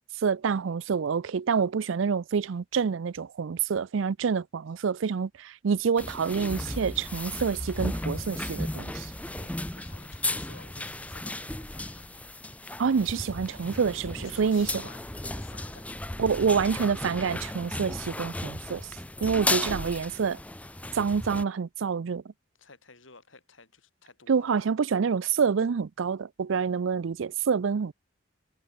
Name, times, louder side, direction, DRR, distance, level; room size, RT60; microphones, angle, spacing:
voice 1, 0.2-9.1 12.8-14.7 16.2-18.9 19.2-20.4 20.9-22.2 24.3-27.9, right 6 dB, 70° right, 0.4 m, -27 dB
sound 1, 6.0-21.4, left 1 dB, 5° left, 0.7 m, -35 dB
voice 2, 9.3-12.3 14.2-16.0 22.6-24.6, left 4 dB, 75° left, 7.2 m, -53 dB
head